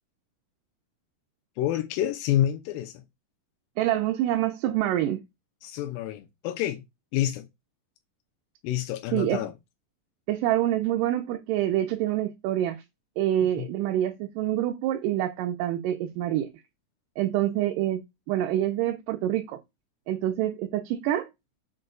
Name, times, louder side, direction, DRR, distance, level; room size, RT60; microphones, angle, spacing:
voice 1, 1.6-2.9 5.6-6.8 7.1-7.5 8.6-9.5 13.6-13.7, left 12 dB, 85° left, 2.4 m, -28 dB
voice 2, 3.8-5.2 9.1-9.4 10.3-12.8 13.2-16.5 17.2-18.0 18.3-19.6 20.1-21.3, right 13 dB, 80° right, 2.0 m, -26 dB
6.2 x 2.2 x 3.8 m
omnidirectional pair, 4.0 m